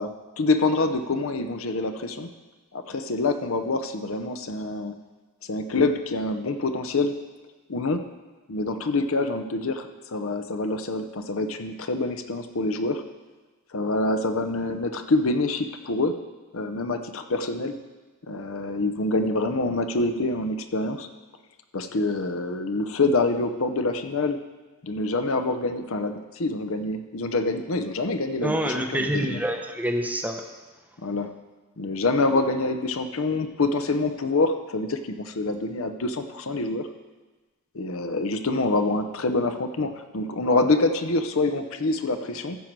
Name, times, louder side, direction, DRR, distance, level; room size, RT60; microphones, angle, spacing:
voice 1, 0.0-2.3 2.7-4.9 5.5-7.1 7.7-8.1 8.5-13.0 13.7-16.2 16.5-17.7 18.3-21.1 21.7-24.4 24.8-29.4 31.0-31.3 31.8-36.9 37.7-42.6, left 2 dB, 65° left, 8 dB, 0.7 m, -26 dB
voice 2, 28.4-30.4, equal, 5° right, 4 dB, 0.7 m, -27 dB
14.0 x 4.6 x 7.4 m, 1.3 s
head